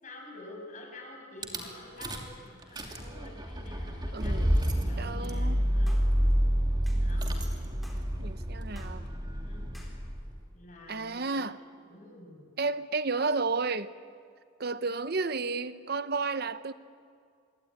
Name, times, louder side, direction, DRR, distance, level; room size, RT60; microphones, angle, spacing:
voice 1, 0.0-6.4 7.0-7.5 9.2-9.8 10.5-11.4 11.8-12.5, left 1 dB, 35° left, 1 dB, 6.4 m, -48 dB
Rattle / Car / Engine starting, 1.4-1.6 2.0-2.3 2.6-10.4, equal, 20° right, 2.8 m, -29 dB
voice 2, 4.1-4.5 5.0-5.7 8.2-9.0 10.9-11.6 12.6-13.9 14.6-16.7, right 3 dB, 50° right, 13 dB, 0.9 m, -32 dB
sound 1, 5.9-6.1 6.9-7.0 7.8-8.1 8.8-9.0 9.7-10.0, equal, ahead, 4.0 m, -53 dB
26.0 x 23.0 x 9.7 m, 2.2 s
head